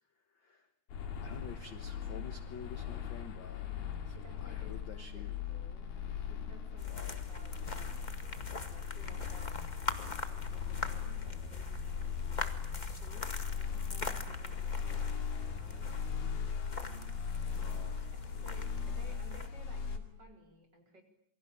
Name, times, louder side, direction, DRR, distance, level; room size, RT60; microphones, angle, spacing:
voice 1, 0.1-0.7 1.2-3.7 4.4-5.4 6.8-7.3 17.5-18.1, left 6 dB, 55° left, 10 dB, 1.4 m, -50 dB
sound 1, 0.9-20.0, left 7 dB, 85° left, 4.2 m, -39 dB
voice 2, 4.0-8.1 8.7-12.2 12.6-16.0 18.1-21.0, equal, 30° right, 4 dB, 5.2 m, -58 dB
sound 2, 6.8-19.5, left 2 dB, 20° left, 1.1 m, -43 dB
28.0 x 24.0 x 8.9 m, 0.69 s
omnidirectional pair, 3.9 m